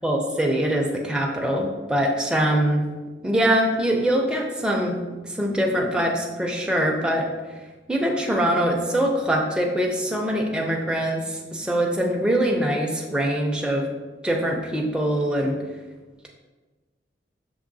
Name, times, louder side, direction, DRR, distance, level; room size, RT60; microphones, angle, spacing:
voice 1, 0.0-2.8 3.2-5.0 5.2-7.3 7.9-13.9 14.2-15.6, right 1 dB, 5° right, -1 dB, 0.4 m, -23 dB
6.3 x 3.0 x 2.6 m, 1.2 s
head